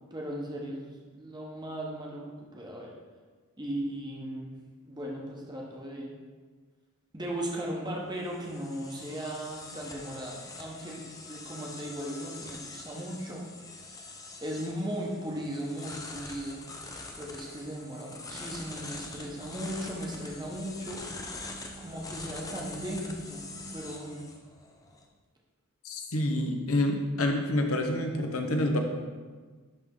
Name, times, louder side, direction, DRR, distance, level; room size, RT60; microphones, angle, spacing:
voice 1, 0.1-2.2 2.5-2.9 3.6-4.5 4.9-6.1 7.1-13.4 14.4-16.6 17.2-21.0 21.8-23.5 23.7-24.3, right 1 dB, 20° right, -2 dB, 1.0 m, -37 dB
sound 1, 7.9-25.0, left 3 dB, 15° left, 0.5 m, -44 dB
sound 2, 18.4-23.8, right 1 dB, 45° right, 1.6 m, -49 dB
voice 2, 25.8-28.8, left 1 dB, 65° left, 3 dB, 0.8 m, -28 dB
11.0 x 3.6 x 3.7 m, 1.4 s
head